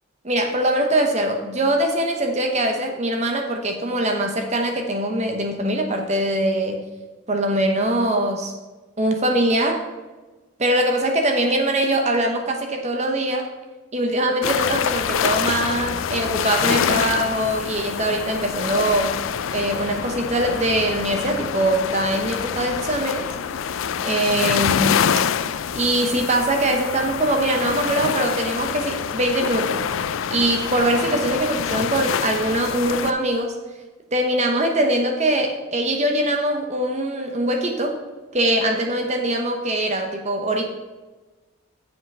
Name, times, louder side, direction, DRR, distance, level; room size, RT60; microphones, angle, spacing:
voice 1, 0.2-6.8 7.3-8.5 9.0-9.8 10.6-13.5 13.9-19.2 19.5-23.3 24.0-25.0 25.7-29.9 30.3-33.6 34.1-38.0 38.3-40.7, right 1 dB, 35° right, 4 dB, 0.9 m, -22 dB
sound 1, 14.4-33.1, left 7 dB, 75° left, 0.4 m, -26 dB
8.0 x 5.7 x 5.4 m, 1.2 s
head